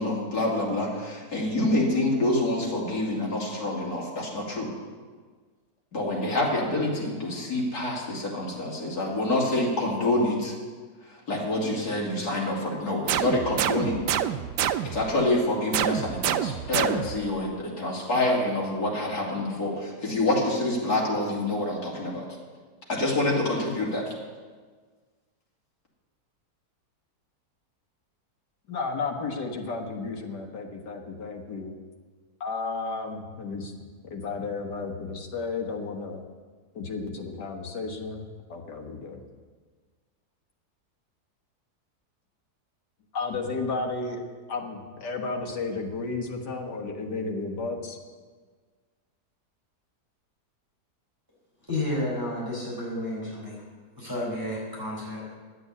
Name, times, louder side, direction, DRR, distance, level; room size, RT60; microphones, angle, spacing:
voice 1, 0.0-4.7 5.9-10.5 11.3-14.0 14.8-22.3 22.9-24.1, left 1 dB, 65° left, -3 dB, 3.1 m, -27 dB
sound 1, 13.1-15.1 15.7-17.3, right 10 dB, 85° right, 1.2 m, -27 dB
voice 2, 28.7-31.8 32.4-33.7 34.1-36.2 36.8-38.2 38.5-39.2 43.1-44.2 44.5-48.0, left 3 dB, 80° left, 2 dB, 2.0 m, -33 dB
voice 3, 51.7-53.6 54.0-55.3, left 1 dB, 10° right, -7 dB, 4.4 m, -31 dB
11.0 x 7.9 x 8.3 m, 1.5 s
omnidirectional pair, 1.8 m